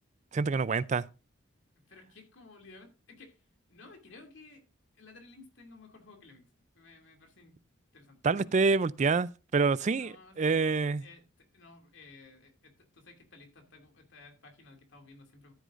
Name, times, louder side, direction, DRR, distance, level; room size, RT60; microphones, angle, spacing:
voice 1, 0.3-1.0 8.2-11.0, right 4 dB, 35° right, 0.4 m, -27 dB
voice 2, 1.8-3.4 3.7-4.6 4.9-6.5 6.7-7.6 7.9-8.5 10.0-10.6 11.0-15.5, left 3 dB, 60° left, 2.5 m, -55 dB
13.5 x 8.2 x 2.5 m
head